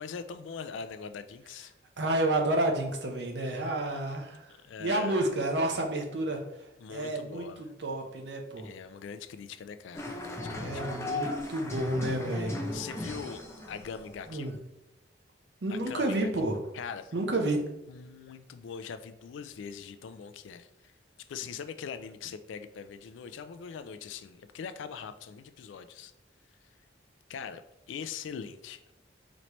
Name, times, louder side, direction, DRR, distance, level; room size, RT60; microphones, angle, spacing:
voice 1, 0.0-1.7 4.6-5.3 6.8-7.7 8.6-11.0 12.7-14.6 15.7-16.3 16.7-17.1 17.9-20.9 21.2-26.1 27.3-27.6 27.9-28.9, left 6 dB, 80° left, 11 dB, 0.3 m, -42 dB
voice 2, 2.0-4.5 4.8-6.4 6.9-8.7 10.6-12.6 14.3-14.5 15.6-16.6 17.1-17.6, right 1 dB, 60° right, 3 dB, 0.7 m, -30 dB
sound 1, 9.9-14.5, left 2 dB, 15° left, 0.4 m, -36 dB
4.1 x 3.2 x 3.0 m, 0.89 s
head